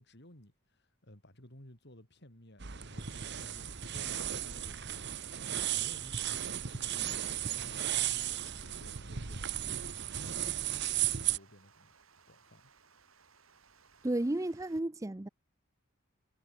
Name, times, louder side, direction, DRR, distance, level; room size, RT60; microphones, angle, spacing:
voice 1, 0.0-4.9 5.5-11.9 12.3-12.7, left 1 dB, 55° left, 5.9 m, -56 dB
sound 1, 2.6-11.4, right 11 dB, 55° right, 1.3 m, -35 dB
Water, 2.9-14.8, right 5 dB, 80° right, 4.9 m, -63 dB
voice 2, 14.0-15.3, right 1 dB, 15° right, 0.5 m, -32 dB
head